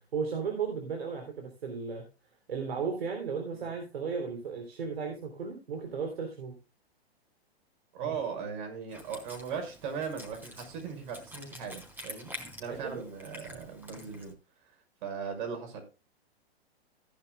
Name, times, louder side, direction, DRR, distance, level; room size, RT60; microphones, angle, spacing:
voice 1, 0.1-2.0 2.5-6.5 12.7-13.1, right 5 dB, 65° right, 2 dB, 3.6 m, -35 dB
voice 2, 7.9-12.3 12.6-14.3 15.0-15.8, right 6 dB, 50° right, 5 dB, 6.0 m, -38 dB
Wind instrument woodwind instrument, 8.9-14.3, equal, 5° right, 3.6 m, -47 dB
16.0 x 10.5 x 2.3 m, 0.29 s
figure-of-eight pair, 110°, 32 cm